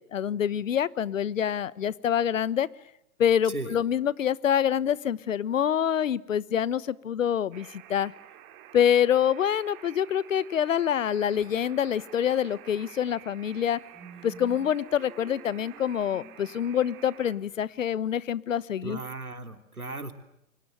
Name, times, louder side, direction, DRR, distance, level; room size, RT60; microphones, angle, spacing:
voice 1, 0.0-2.7 3.2-8.1 8.7-13.8 14.2-19.0, left 9 dB, 65° left, 21 dB, 1.2 m, -26 dB
Alarm, 7.5-17.4, right 12 dB, 35° right, 4.2 m, -50 dB
sound 1, 13.2-13.3 13.6-17.6, right 1 dB, ahead, 3.1 m, -50 dB
voice 2, 18.8-20.1, right 2 dB, 90° right, 8 dB, 3.5 m, -36 dB
30.0 x 24.0 x 7.7 m, 0.81 s
figure-of-eight pair, 115°, 42 cm